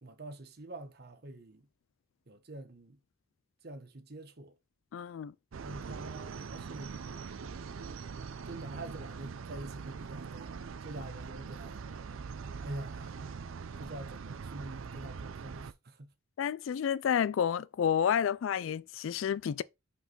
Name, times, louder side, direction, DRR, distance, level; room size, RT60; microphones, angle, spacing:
voice 1, 0.0-1.7 2.3-3.0 3.6-4.6 5.6-7.0 8.4-11.8 12.5-13.2 13.8-16.1, right 2 dB, 50° right, 1.0 m, -46 dB
voice 2, 4.9-5.3 16.4-19.6, left 8 dB, 80° left, 0.3 m, -30 dB
sound 1, 5.5-15.7, right 5 dB, 90° right, 0.5 m, -42 dB
5.7 x 4.7 x 3.8 m
head